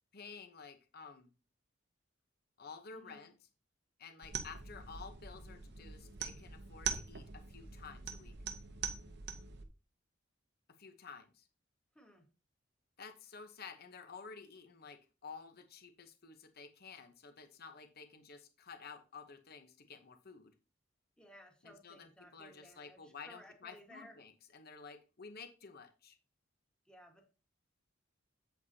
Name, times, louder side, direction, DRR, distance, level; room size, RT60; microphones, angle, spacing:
voice 1, 0.1-1.3 2.6-3.3 4.0-8.3 10.8-11.5 13.0-20.5 21.6-26.2, left 5 dB, 50° left, 7 dB, 1.0 m, -52 dB
voice 2, 2.9-3.3 11.9-12.3 21.2-24.2 26.8-27.3, equal, 5° left, 2 dB, 1.6 m, -58 dB
sound 1, 4.2-9.6, right 6 dB, 55° right, 0.9 m, -43 dB
8.2 x 8.1 x 2.8 m, 0.32 s
head